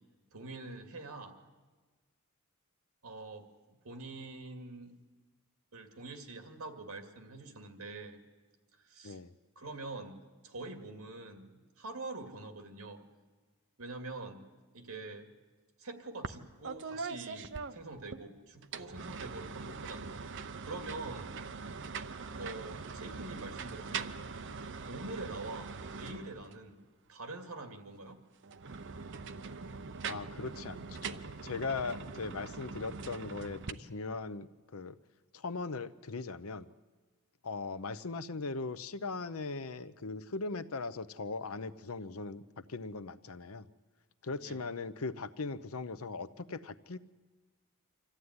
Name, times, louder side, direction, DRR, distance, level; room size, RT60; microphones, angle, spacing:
voice 1, 0.3-1.4 3.0-4.9 5.7-8.2 8.8-9.2 9.6-13.0 13.8-14.5 14.7-15.3 15.8-21.3 22.4-24.2 24.9-26.8 27.1-28.2 44.4-44.6, right 2 dB, 80° right, 6 dB, 2.3 m, -45 dB
sound 1, 16.2-16.4 16.6-18.2 18.6-26.7 28.4-33.7, right 5 dB, 55° right, 0.8 m, -42 dB
voice 2, 30.0-34.9 35.3-36.7 37.4-43.7 44.2-47.0, left 3 dB, 75° left, 13 dB, 0.8 m, -39 dB
25.5 x 14.5 x 9.7 m, 1.4 s
head